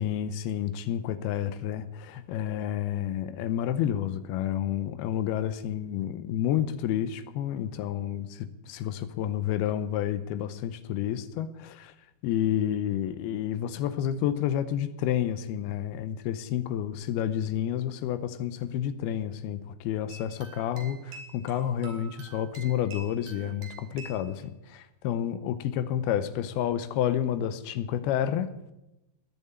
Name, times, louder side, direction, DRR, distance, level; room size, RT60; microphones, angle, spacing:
voice 1, 0.0-11.9 12.2-28.5, left 10 dB, 85° left, 13 dB, 2.7 m, -30 dB
sound 1, 20.1-24.3, right 3 dB, 60° right, 3.9 m, -47 dB
19.0 x 7.5 x 8.5 m, 0.92 s
omnidirectional pair, 4.5 m